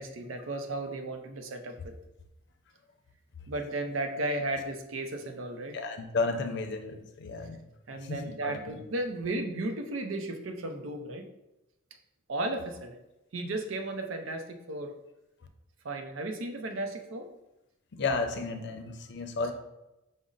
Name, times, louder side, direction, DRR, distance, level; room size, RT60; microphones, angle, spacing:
voice 1, 0.0-1.9 3.5-5.8 7.9-11.3 12.3-13.0 13.3-14.9 15.8-17.3, right 2 dB, 90° right, 5 dB, 0.6 m, -34 dB
voice 2, 5.7-7.6 8.0-8.8 17.9-19.5, left 3 dB, 60° left, 5 dB, 0.5 m, -33 dB
5.1 x 2.1 x 3.8 m, 0.93 s
head